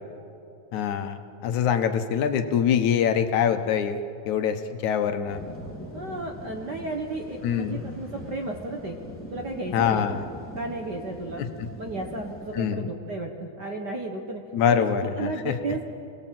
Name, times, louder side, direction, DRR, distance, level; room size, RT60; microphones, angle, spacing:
voice 1, 0.7-4.0 4.3-5.4 7.4-7.8 9.7-10.2 11.4-11.5 12.5-12.9 14.5-15.6, left 8 dB, 75° left, 8 dB, 2.5 m, -24 dB
sound 1, 5.2-12.6, left 1 dB, 5° left, 2.6 m, -41 dB
voice 2, 5.9-9.0 9.3-10.2 10.6-11.4 11.8-14.9 15.2-15.8, right 2 dB, 45° right, 2 dB, 1.6 m, -33 dB
29.0 x 18.5 x 7.7 m, 2.6 s
omnidirectional pair, 3.5 m